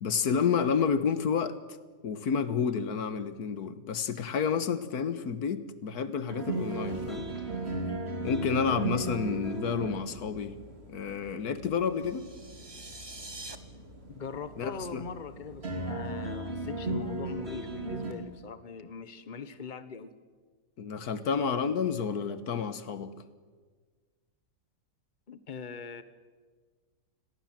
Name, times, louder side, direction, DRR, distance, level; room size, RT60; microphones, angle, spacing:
voice 1, 0.0-1.6 2.0-7.3 8.2-10.6 10.9-12.3 14.6-15.1 20.8-23.1, left 6 dB, 90° left, 13 dB, 1.7 m, -30 dB
sound 1, 6.3-18.1, right 2 dB, 40° right, 3.4 m, -37 dB
sound 2, 12.0-13.6, right 2 dB, 20° right, 1.2 m, -45 dB
voice 2, 14.1-20.1 25.3-26.0, left 5 dB, 35° left, 12 dB, 1.3 m, -41 dB
29.0 x 21.0 x 7.6 m, 1.5 s
omnidirectional pair, 1.6 m